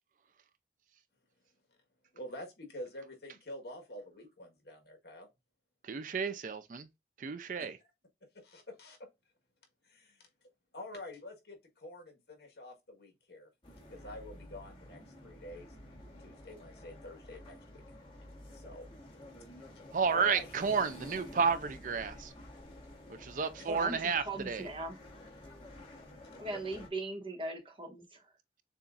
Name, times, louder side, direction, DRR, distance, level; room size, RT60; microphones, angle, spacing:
voice 1, 2.1-5.3 7.6-7.7 8.3-9.0 9.8-10.2 10.7-13.5 13.9-17.8 18.5-18.9 20.1-20.5 23.6-23.9, left 1 dB, 65° left, 1.5 m, -47 dB
voice 2, 5.8-6.9 7.2-7.8 19.9-22.3 23.2-24.7, right 5 dB, 45° right, 0.4 m, -32 dB
sound 1, 13.6-26.9, left 1 dB, 30° left, 1.5 m, -51 dB
voice 3, 23.7-25.0 26.4-28.3, right 2 dB, 30° right, 1.1 m, -39 dB
6.8 x 2.4 x 2.5 m
head